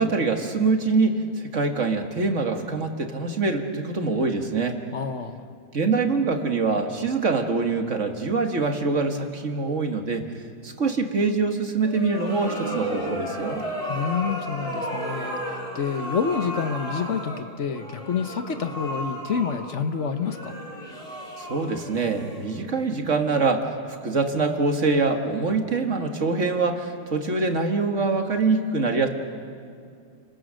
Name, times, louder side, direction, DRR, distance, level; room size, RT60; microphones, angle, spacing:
voice 1, 0.0-4.8 5.7-10.2 10.6-13.6 21.4-29.1, right 4 dB, 55° right, 5 dB, 2.0 m, -24 dB
voice 2, 4.9-5.4 13.9-20.6, left 6 dB, 55° left, 8 dB, 1.3 m, -28 dB
sound 1, 11.8-22.8, equal, 25° left, 4.8 m, -34 dB
30.0 x 22.5 x 6.4 m, 2.3 s
omnidirectional pair, 1.5 m